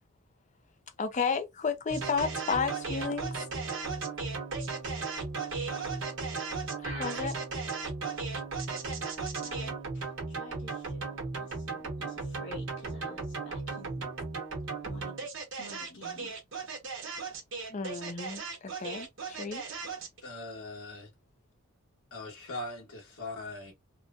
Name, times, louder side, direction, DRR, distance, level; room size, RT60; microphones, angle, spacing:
voice 1, 1.0-3.3 6.8-7.4 17.7-19.7, left 5 dB, 35° left, 0.5 m, -32 dB
sound 1, 1.9-20.2, right 4 dB, 60° right, 1.1 m, -36 dB
voice 2, 9.4-14.1 14.8-15.3 15.6-16.3, left 1 dB, 55° left, 1.3 m, -50 dB
voice 3, 20.2-21.1 22.1-23.7, left 2 dB, 80° left, 1.3 m, -40 dB
2.9 x 2.1 x 2.5 m
head